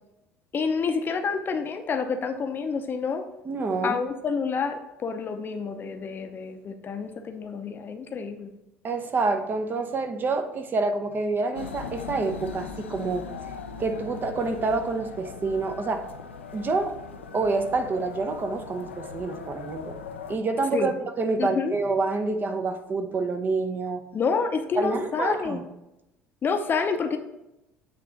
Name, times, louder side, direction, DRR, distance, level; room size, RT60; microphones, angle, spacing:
voice 1, 0.5-3.2 3.8-8.5 20.7-20.9 21.4-21.7 24.1-25.6 26.4-27.2, left 5 dB, 35° left, 7 dB, 0.6 m, -28 dB
voice 2, 3.4-4.0 8.8-13.3 13.8-16.0 16.5-17.0 17.3-20.0 20.3-20.9 21.2-24.0 24.8-25.6, right 3 dB, 30° right, 7 dB, 0.7 m, -27 dB
sound 1, 11.5-20.4, left 5 dB, 80° left, 0.4 m, -40 dB
8.1 x 3.3 x 3.8 m, 0.91 s
figure-of-eight pair, 60°, 6 cm